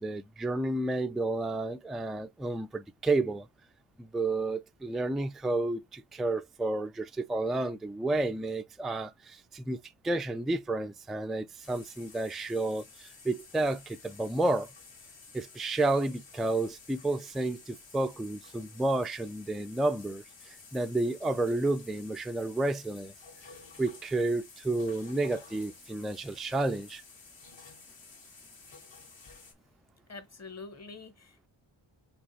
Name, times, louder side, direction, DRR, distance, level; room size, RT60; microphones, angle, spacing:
voice 1, 0.0-3.5 4.0-9.8 10.0-14.7 15.3-20.2 20.7-23.1 23.8-27.0, right 2 dB, ahead, 0.3 m, -31 dB
sound 1, 11.6-29.5, left 4 dB, 70° left, 2.2 m, -53 dB
voice 2, 30.1-31.5, left 4 dB, 35° left, 1.1 m, -46 dB
5.4 x 2.9 x 3.1 m
wide cardioid pair, 115°, 47 cm